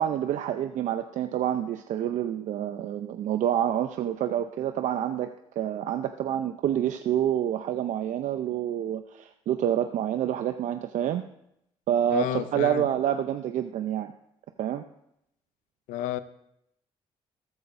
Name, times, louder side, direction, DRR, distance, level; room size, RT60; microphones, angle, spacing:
voice 1, 0.0-5.3 5.6-11.2 11.9-14.1 14.6-14.8, right 10 dB, 75° right, 8 dB, 0.6 m, -27 dB
voice 2, 12.1-12.8 15.9-16.2, left 12 dB, 90° left, 13 dB, 0.6 m, -30 dB
14.0 x 13.0 x 2.6 m, 0.79 s
supercardioid pair, 65°, 13 cm